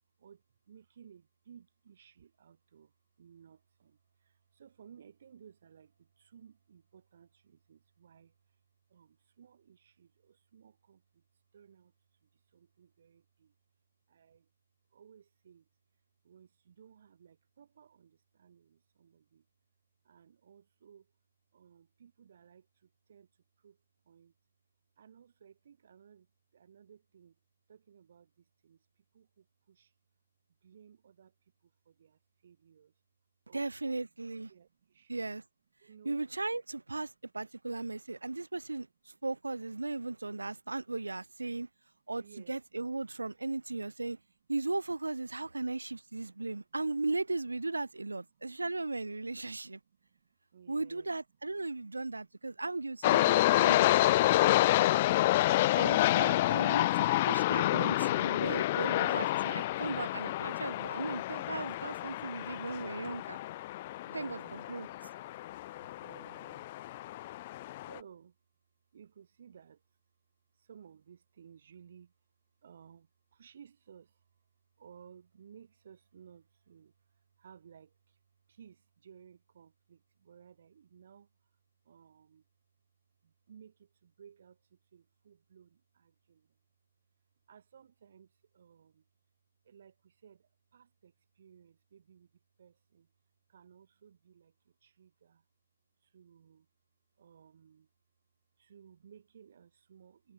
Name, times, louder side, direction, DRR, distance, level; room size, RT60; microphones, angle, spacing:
voice 1, 0.2-8.3 8.9-11.2 11.5-11.9 12.2-13.5 14.1-14.5 14.9-15.7 16.2-19.5 20.0-21.1 21.5-23.3 23.6-24.3 25.0-26.3 26.5-27.4 27.7-28.9 29.1-29.9 30.6-31.3 31.6-32.9 33.5-34.0 34.5-35.3 35.8-36.2 42.2-42.6 49.6-51.2 52.5-52.6 61.2-61.3 63.6-64.6 64.9-65.5 66.0-66.7 67.8-68.4 68.9-69.8 70.6-72.1 72.6-74.2 74.8-78.2 78.5-81.3 81.8-82.4 83.2-86.6 87.5-89.1 89.6-93.1 93.5-95.4 96.0-96.7 97.2-97.9 98.6-100.3, right 8 dB, 45° right, 7.1 m, -59 dB
voice 2, 33.5-34.5 35.1-35.4 36.0-41.7 42.1-44.2 44.5-49.8 50.7-54.2 55.8-63.4 64.1-64.9, right 3 dB, 70° right, 2.4 m, -37 dB
sound 1, 53.0-68.0, left 16 dB, 30° left, 0.3 m, -29 dB
figure-of-eight pair, 135°, 0 cm